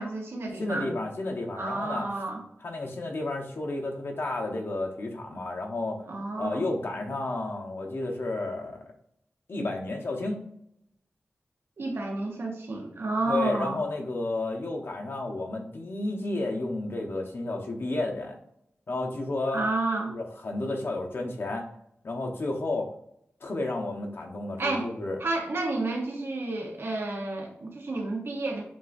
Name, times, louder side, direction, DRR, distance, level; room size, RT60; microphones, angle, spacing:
voice 1, 0.0-0.9 1.6-2.4 6.1-6.6 11.8-13.8 19.5-20.1 24.6-24.9 25.2-28.6, right 2 dB, 65° right, 1 dB, 0.9 m, -30 dB
voice 2, 0.6-2.1 2.6-6.0 6.4-8.9 9.5-10.4 13.3-18.4 18.9-19.6 20.1-21.7 22.0-22.9 23.4-25.2, left 2 dB, 60° left, 1 dB, 0.8 m, -31 dB
7.2 x 2.4 x 2.6 m, 0.72 s
wide cardioid pair, 90°, 4 cm